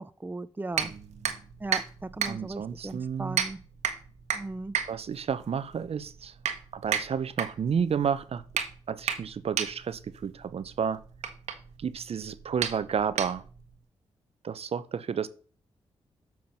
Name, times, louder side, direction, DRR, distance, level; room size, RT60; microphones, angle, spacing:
voice 1, 0.0-0.9 1.6-3.6 4.3-4.8, right 2 dB, 15° right, 0.6 m, -37 dB
sound 1, 0.7-13.7, right 8 dB, 90° right, 1.2 m, -34 dB
voice 2, 0.8-1.4 2.2-3.4 4.9-6.3 6.7-8.4 8.9-11.0 11.8-13.4 14.4-15.3, right 7 dB, 65° right, 0.8 m, -31 dB
7.4 x 6.0 x 5.9 m
cardioid pair, 50°, 11 cm